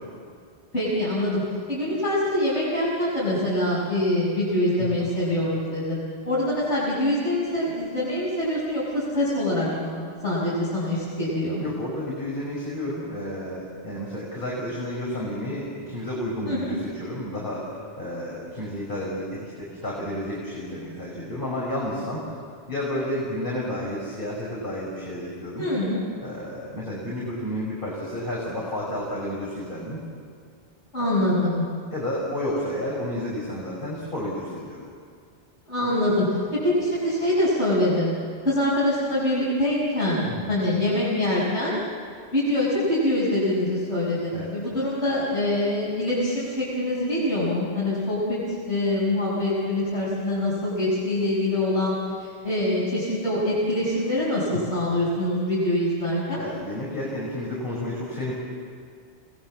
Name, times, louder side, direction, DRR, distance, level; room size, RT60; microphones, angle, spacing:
voice 1, 0.7-1.4 1.7-10.0 10.2-11.6 16.5-16.7 25.6-26.0 30.9-31.6 35.7-38.1 38.4-41.8 42.3-56.4, left 1 dB, 85° left, -10 dB, 6.9 m, -24 dB
voice 2, 11.6-22.4 22.7-25.7 26.2-30.0 31.0-31.4 31.9-34.9 40.2-40.6 44.3-44.5 56.4-58.3, left 1 dB, 50° left, -5 dB, 5.6 m, -31 dB
29.5 x 21.0 x 7.5 m, 2.2 s
omnidirectional pair, 1.2 m